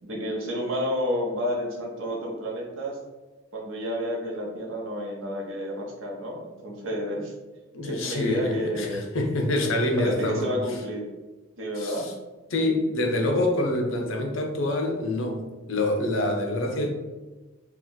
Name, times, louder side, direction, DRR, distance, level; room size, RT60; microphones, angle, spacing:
voice 1, 0.0-3.0 3.5-7.3 7.8-9.0 9.4-11.0 11.6-12.1 13.2-13.3, equal, 85° right, -2 dB, 0.9 m, -30 dB
voice 2, 7.7-10.5 11.8-12.1 12.5-15.4 15.7-16.9, left 1 dB, 85° left, 3 dB, 0.6 m, -26 dB
2.9 x 2.4 x 3.8 m, 1.2 s
head